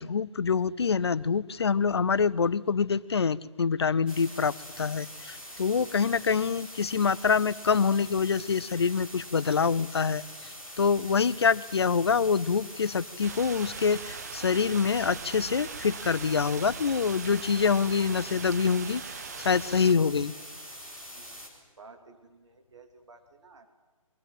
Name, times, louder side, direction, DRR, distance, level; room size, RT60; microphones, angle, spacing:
voice 1, 0.0-19.0 19.4-20.3, left 5 dB, 45° left, 19 dB, 0.8 m, -26 dB
sound 1, 4.1-21.5, equal, 5° right, 4.1 m, -44 dB
sound 2, 13.2-19.9, right 7 dB, 30° right, 0.7 m, -41 dB
voice 2, 21.1-23.7, right 4 dB, 55° right, 6 dB, 2.9 m, -54 dB
28.5 x 23.0 x 7.7 m, 1.3 s
figure-of-eight pair, 145°, 18 cm